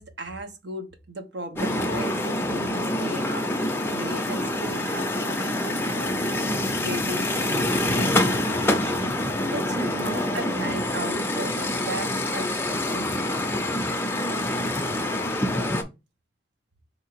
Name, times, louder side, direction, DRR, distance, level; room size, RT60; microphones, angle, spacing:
voice 1, 0.0-9.1 9.5-13.5, right 1 dB, 75° right, 0.8 m, -36 dB
sound 1, 1.6-15.8, left 1 dB, 15° left, 0.5 m, -26 dB
3.8 x 2.8 x 4.5 m
head